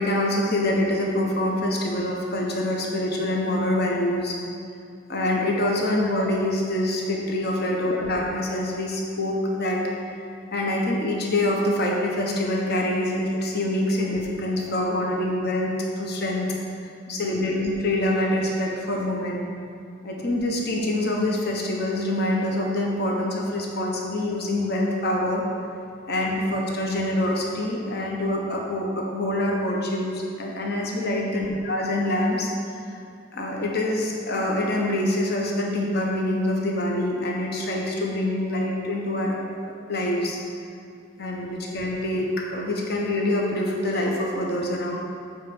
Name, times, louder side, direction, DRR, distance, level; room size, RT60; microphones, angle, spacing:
voice 1, 0.0-4.4 5.1-9.8 10.5-16.5 17.1-19.4 20.0-25.4 26.1-32.5 32.9-33.0 33.3-40.4 41.2-45.0, left 1 dB, 55° left, -1 dB, 1.2 m, -25 dB
8.8 x 4.6 x 7.0 m, 2.3 s
head